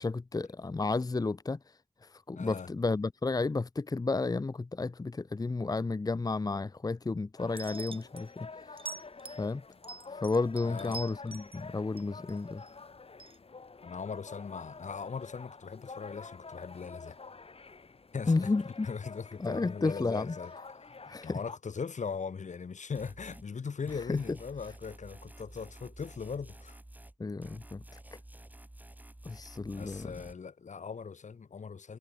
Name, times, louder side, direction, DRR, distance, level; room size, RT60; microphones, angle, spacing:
voice 1, 0.0-1.6 2.3-8.5 9.4-9.6 10.2-12.6 18.3-18.9 19.4-20.3 21.1-21.4 24.1-24.2 27.2-27.8 29.2-30.1, left 3 dB, 30° left, 0.8 m, -32 dB
voice 2, 2.3-2.7 10.6-11.1 13.8-17.2 18.1-20.5 21.2-26.8 29.8-32.0, left 5 dB, 85° left, 5.2 m, -40 dB
sound 1, 7.4-21.6, left 4 dB, 55° left, 4.4 m, -48 dB
sound 2, 7.6-8.2 8.8-9.4 9.8-11.6 12.0-12.7 13.2-13.4, right 4 dB, 50° right, 2.0 m, -44 dB
sound 3, 23.0-23.5 23.9-27.2 27.4-30.3, right 1 dB, 15° right, 3.3 m, -51 dB
wide cardioid pair, 95°, 12 cm